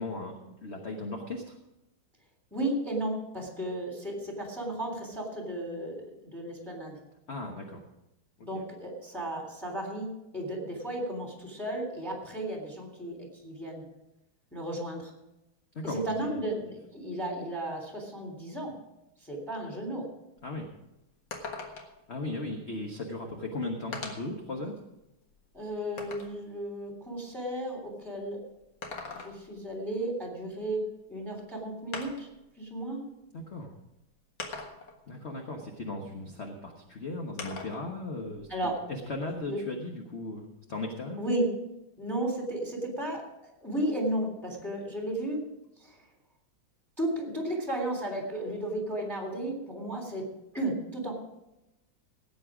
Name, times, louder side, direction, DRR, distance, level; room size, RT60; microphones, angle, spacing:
voice 1, 0.0-1.6 7.3-7.8 8.4-8.6 15.7-16.4 20.4-20.7 22.1-24.8 33.3-33.7 35.1-41.2, left 2 dB, 35° left, 2 dB, 1.3 m, -37 dB
voice 2, 2.5-7.0 8.4-13.8 14.5-15.1 15.8-18.7 19.2-20.1 25.5-28.4 29.1-30.8 31.1-32.3 32.6-33.0 38.5-38.8 39.5-39.6 41.2-41.5 42.0-45.4 45.8-45.9 47.0-50.3 50.5-51.1, right 1 dB, ahead, 1 dB, 3.1 m, -34 dB
sound 1, 20.4-20.5 20.8-20.9 21.3-22.1 23.1-23.2 23.9-24.4 25.0-26.4 28.6-29.6 31.1-31.2 31.9-32.4 33.4-33.5 34.4-35.0 37.4-37.9 38.2-39.3, left 3 dB, 60° left, 2.2 m, -41 dB
17.5 x 8.7 x 5.0 m, 0.92 s
omnidirectional pair, 2.3 m